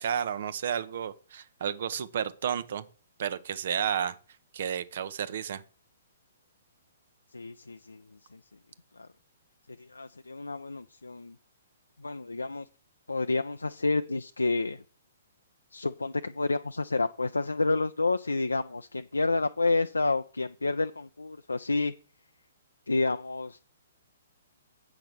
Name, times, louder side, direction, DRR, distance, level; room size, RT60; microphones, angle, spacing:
voice 1, 0.0-2.8 3.2-4.2 4.5-5.6, right 8 dB, 55° right, 0.8 m, -31 dB
voice 2, 7.3-8.0 8.3-8.4 9.0-9.1 9.8-11.4 12.0-12.7 13.1-14.8 15.7-21.9 22.9-23.7, left 3 dB, 85° left, 0.4 m, -29 dB
8.1 x 5.9 x 6.7 m
figure-of-eight pair, 125°, 0 cm